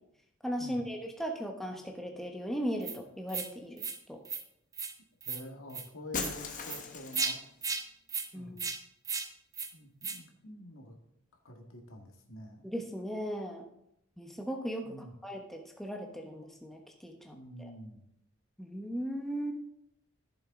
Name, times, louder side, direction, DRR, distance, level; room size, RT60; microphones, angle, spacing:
voice 1, 0.4-3.8 4.1-4.2 8.3-8.5 12.6-13.6 14.2-17.7 18.6-19.5, equal, ahead, 2 dB, 1.0 m, -37 dB
sound 1, 2.8-3.0 3.3-3.5 3.8-4.0 4.2-4.4 4.7-4.9 5.2-5.4 5.7-5.8 6.2-6.3 6.6-6.8 7.1-7.3 7.6-7.8 8.1-8.3 8.6-8.8 9.0-9.3 9.5-9.7 10.0-10.2, right 5 dB, 15° right, 0.7 m, -35 dB
voice 2, 5.3-7.4 8.3-8.8 9.7-10.9 11.4-12.7 14.8-15.1 17.3-18.0, equal, 90° left, 2 dB, 1.8 m, -47 dB
Shatter, 6.1-7.5, left 4 dB, 40° left, 1.1 m, -38 dB
14.5 x 7.0 x 3.8 m, 0.78 s
head